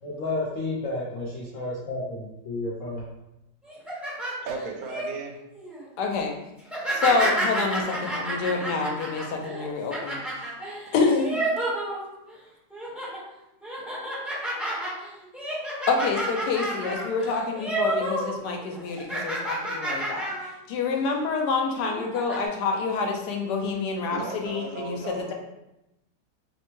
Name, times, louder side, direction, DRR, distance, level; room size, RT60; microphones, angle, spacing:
voice 1, 0.0-3.0, left 2 dB, 60° left, -5 dB, 0.9 m, -31 dB
sound 1, 3.6-5.1 5.5-5.8 6.6-12.4 12.7-13.2 13.6-18.3 18.6-20.5 20.9-21.1 21.8-22.4, right 1 dB, ahead, 0.9 m, -30 dB
voice 2, 4.4-5.4 24.1-25.3, right 4 dB, 65° right, 2 dB, 1.0 m, -35 dB
voice 3, 6.0-6.4 6.9-10.2 10.9-11.4 15.9-20.3 20.7-25.3, left 4 dB, 80° left, 2 dB, 1.2 m, -27 dB
5.1 x 2.1 x 3.0 m, 0.91 s
omnidirectional pair, 1.8 m